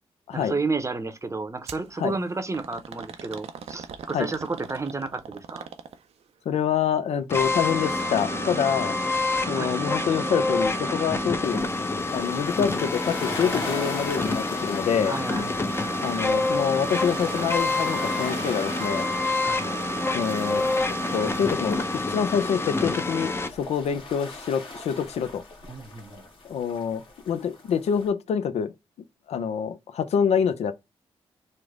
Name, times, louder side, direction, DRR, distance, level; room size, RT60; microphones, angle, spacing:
voice 1, 0.3-5.7 9.6-9.9 15.0-15.9 19.4-19.7 25.7-26.2, right 3 dB, 25° right, 0.7 m, -32 dB
sound 1, 1.7-1.9 2.5-6.2 7.8-8.1 8.5-8.6 9.4-9.5, right 7 dB, 65° right, 0.5 m, -41 dB
voice 2, 6.5-9.0 9.5-11.6 12.1-15.1 16.0-19.1 20.1-20.7 21.1-21.8 22.1-25.4 26.4-28.7 29.3-30.7, left 7 dB, 70° left, 0.4 m, -26 dB
sound 2, 7.3-23.5, left 2 dB, 20° left, 0.6 m, -27 dB
sound 3, 11.4-28.1, left 2 dB, 45° left, 1.2 m, -40 dB
3.2 x 2.1 x 3.5 m
supercardioid pair, 50°, 11 cm